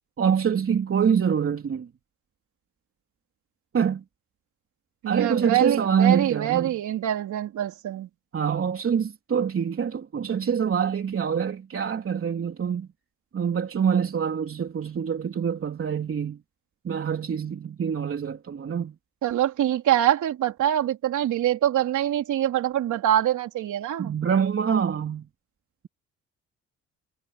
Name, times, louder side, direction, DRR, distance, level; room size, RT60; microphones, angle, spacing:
voice 1, 0.2-1.9 3.7-4.0 5.0-6.7 8.3-12.9 13.3-16.4 16.8-18.9 24.0-25.3, right 7 dB, 45° right, 3.5 m, -25 dB
voice 2, 5.0-8.1 19.2-24.1, right 12 dB, 75° right, 3.7 m, -24 dB
cardioid pair, 90°, 30 cm